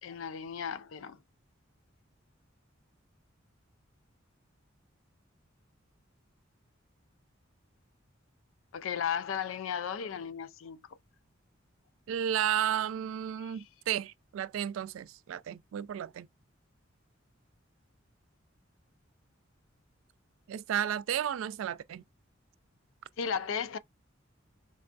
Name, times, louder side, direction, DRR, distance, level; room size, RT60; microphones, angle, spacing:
voice 1, 0.0-1.2 8.7-10.8 13.4-13.6 23.2-23.8, left 7 dB, 85° left, 0.4 m, -35 dB
voice 2, 12.1-16.3 20.5-22.0, right 10 dB, 85° right, 0.3 m, -33 dB
4.6 x 2.2 x 2.5 m
head